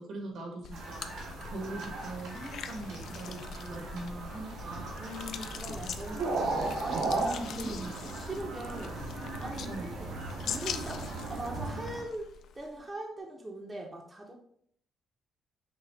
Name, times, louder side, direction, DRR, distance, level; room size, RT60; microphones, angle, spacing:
voice 1, 0.0-5.0 7.6-7.9 9.7-9.9, right 2 dB, 70° right, 1 dB, 1.4 m, -41 dB
sound 1, 0.6-12.8, left 7 dB, 70° left, 0.4 m, -43 dB
sound 2, 0.7-12.0, right 3 dB, 85° right, 1.5 m, -37 dB
voice 2, 5.0-8.9 9.4-10.1 10.4-14.3, right 1 dB, 20° right, -1 dB, 0.9 m, -41 dB
5.9 x 2.5 x 3.5 m, 0.66 s
cardioid pair, 95°, 0 cm